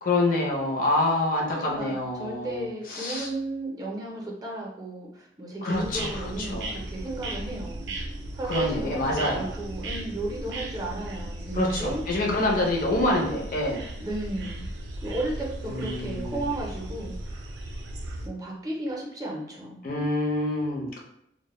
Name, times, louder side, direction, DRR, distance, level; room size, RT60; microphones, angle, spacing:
voice 1, 0.0-3.3 5.6-6.8 8.4-9.5 11.5-13.9 15.7-16.5 19.8-21.0, left 2 dB, 50° left, -1 dB, 0.5 m, -27 dB
voice 2, 1.5-7.9 8.3-12.0 14.0-14.7 15.0-17.1 18.2-19.8, right 2 dB, 20° right, -2 dB, 0.5 m, -34 dB
sound 1, 5.7-18.3, right 1 dB, 80° right, 0.4 m, -36 dB
2.1 x 2.0 x 2.9 m, 0.75 s
head